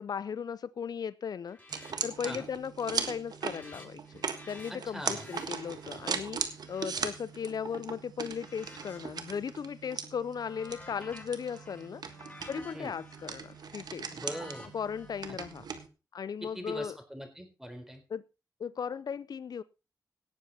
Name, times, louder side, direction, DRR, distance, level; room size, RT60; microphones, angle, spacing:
voice 1, 0.0-1.6 2.0-6.4 6.7-12.0 12.5-14.2 14.6-15.7 16.1-17.0 18.1-18.2 18.6-19.6, left 7 dB, 75° left, 17 dB, 0.5 m, -37 dB
sound 1, 1.5-1.9 2.2-2.7 3.0-7.8 8.3-9.6 10.0-15.1, left 2 dB, 20° left, 7.1 m, -53 dB
sound 2, 1.7-15.9, right 6 dB, 80° right, 1.6 m, -39 dB
voice 2, 4.7-5.3 12.7-12.9 14.1-14.7 16.4-18.0, equal, 5° right, 6 dB, 4.1 m, -41 dB
18.0 x 7.3 x 4.2 m, 0.31 s
cardioid pair, 65°, 7 cm